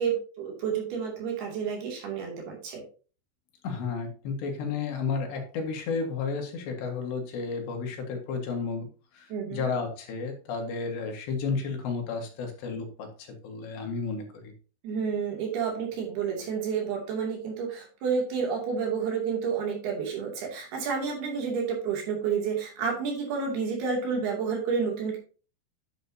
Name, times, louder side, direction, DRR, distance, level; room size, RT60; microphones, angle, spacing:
voice 1, 0.0-2.8 9.3-9.7 14.8-25.2, right 6 dB, 65° right, 0 dB, 4.5 m, -30 dB
voice 2, 3.6-8.9 9.1-14.5, left 5 dB, 75° left, 3 dB, 3.9 m, -32 dB
9.5 x 9.0 x 2.8 m, 0.37 s
omnidirectional pair, 5.0 m